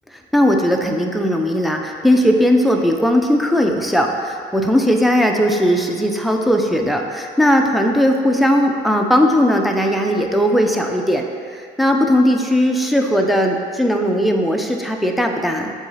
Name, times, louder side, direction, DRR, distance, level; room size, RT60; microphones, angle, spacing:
voice 1, 0.3-15.7, equal, ahead, 2 dB, 0.6 m, -17 dB
6.8 x 3.7 x 5.7 m, 2.1 s
cardioid pair, 90°, 20 cm